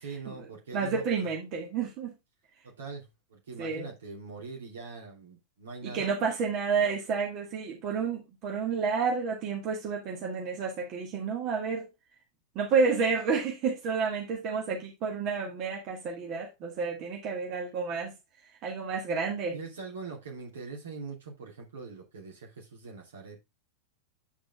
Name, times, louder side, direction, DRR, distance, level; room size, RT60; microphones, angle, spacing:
voice 1, 0.0-1.3 2.6-6.2 6.7-6.9 19.1-19.2 19.4-23.4, right 4 dB, 65° right, 3.0 m, -42 dB
voice 2, 0.7-2.1 3.6-3.9 5.8-11.9 12.6-18.1 18.6-19.6, right 5 dB, 40° right, 2.0 m, -30 dB
8.7 x 5.1 x 3.6 m
figure-of-eight pair, 90°, 0 cm